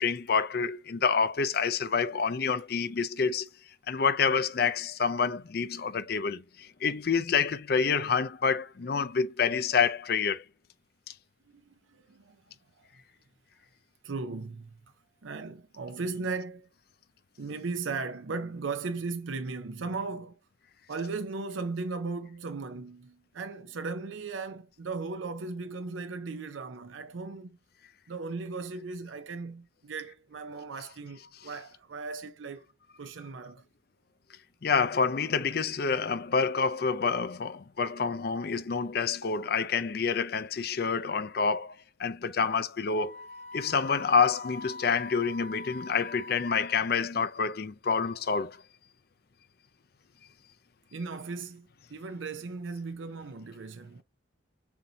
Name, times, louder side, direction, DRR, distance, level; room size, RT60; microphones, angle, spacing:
voice 1, 0.0-3.5 3.9-10.4 34.6-43.2 43.5-48.6, left 5 dB, 50° left, 0.4 m, -28 dB
voice 2, 11.5-12.4 12.8-12.9 14.0-14.7 15.2-16.7 17.4-20.3 20.9-27.6 28.1-32.6 33.0-33.6 50.9-54.0, right 4 dB, 85° right, 0.6 m, -37 dB
Wind instrument woodwind instrument, 42.9-47.1, left 3 dB, 35° left, 1.0 m, -44 dB
7.0 x 2.7 x 2.7 m
head